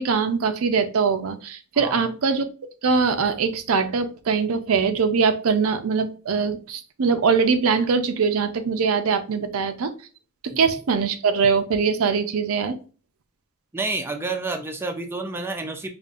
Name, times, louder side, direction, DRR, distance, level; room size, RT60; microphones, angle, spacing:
voice 1, 0.0-2.5 2.8-9.9 10.6-12.8, right 5 dB, 70° right, 9 dB, 0.5 m, -22 dB
voice 2, 1.8-2.1 10.5-10.6 13.7-15.9, right 3 dB, 10° right, 4 dB, 0.4 m, -29 dB
5.1 x 2.4 x 2.4 m, 0.37 s
head